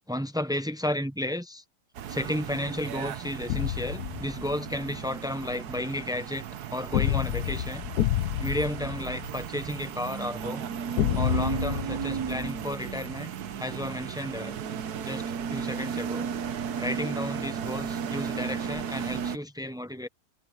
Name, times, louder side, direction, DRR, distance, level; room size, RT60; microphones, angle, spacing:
voice 1, 0.0-1.6 2.1-7.9 8.4-10.7 11.1-14.6 15.0-16.3 16.8-20.1, left 1 dB, 5° right, 0.5 m, -33 dB
sound 1, 2.0-19.4, right 7 dB, 85° right, 1.5 m, -35 dB
sound 2, 3.5-4.9 6.9-9.9 11.0-13.1, left 13 dB, 80° left, 1.2 m, -29 dB
omnidirectional pair, 1.6 m